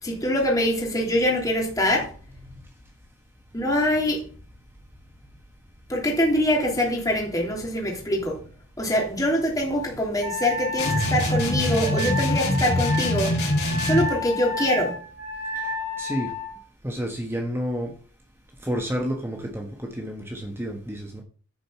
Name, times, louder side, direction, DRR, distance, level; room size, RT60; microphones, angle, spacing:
voice 1, 0.0-2.1 3.5-4.2 5.9-8.4 8.8-13.4 13.8-14.9, left 1 dB, 15° left, 3.0 m, -24 dB
Wind instrument woodwind instrument, 10.2-16.5, left 2 dB, 75° right, 5.7 m, -31 dB
sound 1, 10.8-14.2, left 1 dB, 55° left, 3.9 m, -24 dB
voice 2, 15.5-16.3 16.8-17.9 18.6-21.2, equal, 10° right, 1.4 m, -30 dB
10.5 x 5.1 x 7.0 m
head